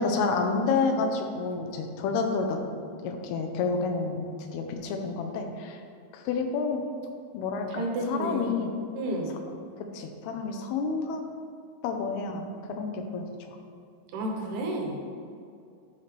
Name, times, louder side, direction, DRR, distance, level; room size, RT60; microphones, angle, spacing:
voice 1, 0.0-2.6 3.0-4.2 4.5-5.8 6.1-6.8 7.3-8.7 9.9-11.2 11.8-13.3, left 4 dB, 85° left, 4 dB, 2.7 m, -29 dB
voice 2, 7.7-8.6 8.9-9.4 14.1-15.0, right 1 dB, 80° right, 0 dB, 3.0 m, -31 dB
11.0 x 5.8 x 3.3 m, 2.5 s
omnidirectional pair, 4.5 m